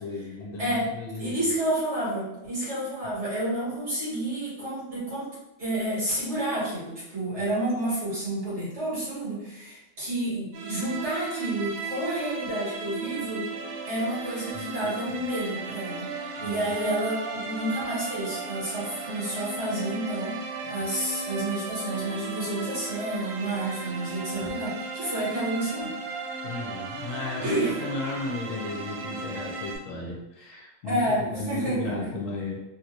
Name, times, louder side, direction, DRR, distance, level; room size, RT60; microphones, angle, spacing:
voice 1, 0.0-1.4 7.4-7.5 14.5-15.2 16.3-16.7 20.7-20.8 24.3-24.6 26.4-32.6, left 3 dB, 70° left, -1 dB, 1.0 m, -35 dB
voice 2, 1.2-5.3 5.6-13.5 13.9-16.1 16.4-20.3 20.7-25.9 27.4-27.7 30.8-32.1, right 1 dB, 50° right, -9 dB, 1.9 m, -30 dB
sound 1, 10.5-29.8, right 3 dB, 75° right, 1.0 m, -36 dB
3.2 x 2.5 x 2.9 m, 0.96 s
omnidirectional pair, 1.5 m